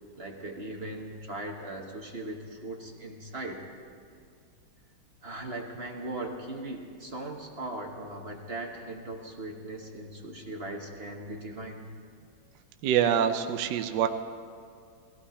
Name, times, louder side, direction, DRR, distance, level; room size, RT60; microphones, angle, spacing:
voice 1, 0.2-3.7 5.2-11.9, right 2 dB, 40° right, 1 dB, 1.0 m, -39 dB
voice 2, 12.8-14.1, right 9 dB, 70° right, 7 dB, 1.1 m, -25 dB
18.5 x 16.5 x 4.2 m, 2.3 s
omnidirectional pair, 2.4 m